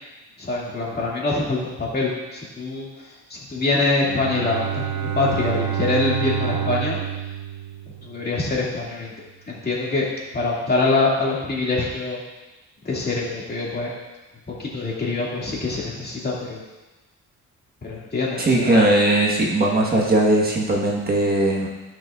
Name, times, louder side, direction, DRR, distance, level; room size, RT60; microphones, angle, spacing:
voice 1, 0.4-7.0 8.0-9.1 9.5-10.0 10.3-12.2 12.8-13.9 14.5-16.6 17.8-18.9, left 3 dB, 30° left, -5 dB, 2.4 m, -24 dB
Bowed string instrument, 4.0-8.4, right 9 dB, 85° right, 0.8 m, -28 dB
voice 2, 18.4-21.7, right 1 dB, 30° right, -3 dB, 1.5 m, -19 dB
14.5 x 6.1 x 2.5 m, 1.1 s
cardioid pair, 115°, 31 cm